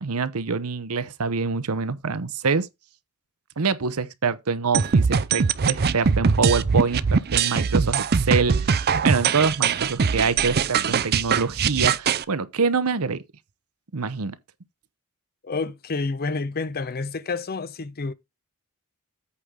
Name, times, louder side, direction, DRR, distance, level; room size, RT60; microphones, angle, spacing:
voice 1, 0.0-2.7 3.6-13.2 13.9-14.3, right 5 dB, 80° right, 0.8 m, -25 dB
sound 1, 4.7-12.2, right 5 dB, 45° right, 0.5 m, -21 dB
voice 2, 15.4-18.1, left 3 dB, 45° left, 0.7 m, -29 dB
8.5 x 3.7 x 6.2 m
head